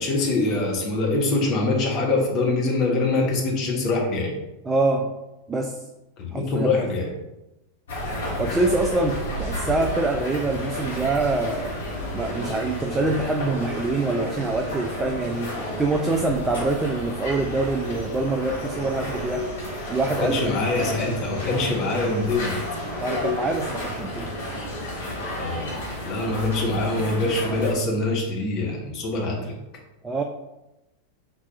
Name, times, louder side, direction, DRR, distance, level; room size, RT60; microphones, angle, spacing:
voice 1, 0.0-4.3 6.2-7.1 20.2-22.6 25.3-25.7 26.0-29.5, left 2 dB, 35° left, 0 dB, 1.1 m, -24 dB
voice 2, 4.6-5.1 5.5-5.8 6.3-6.9 8.4-11.7 12.1-19.5 19.9-20.4 20.8-20.9 23.0-24.3 30.0-30.2, right 3 dB, 15° right, 3 dB, 0.3 m, -25 dB
sound 1, 7.9-27.7, left 1 dB, 60° left, 1.4 m, -31 dB
4.6 x 4.2 x 2.4 m, 0.97 s
figure-of-eight pair, 90°, 0 cm